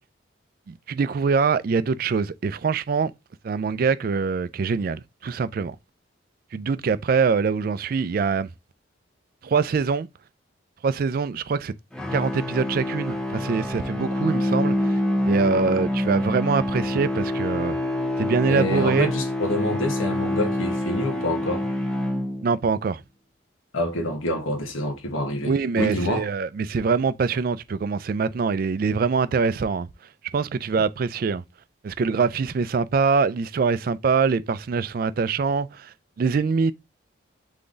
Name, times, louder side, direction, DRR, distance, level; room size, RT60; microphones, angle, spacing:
voice 1, 0.7-3.1 3.4-5.8 6.5-8.5 9.4-10.1 10.8-11.7 12.1-15.0 15.3-17.8 18.2-19.1 22.4-23.0 25.4-29.9 30.3-31.4 31.8-36.7, right 5 dB, 45° right, 0.3 m, -24 dB
sound 1, 11.9-22.7, left 1 dB, 5° left, 0.5 m, -26 dB
voice 2, 18.5-21.6 23.7-26.3, left 1 dB, 90° left, 1.4 m, -27 dB
3.8 x 3.5 x 3.9 m
head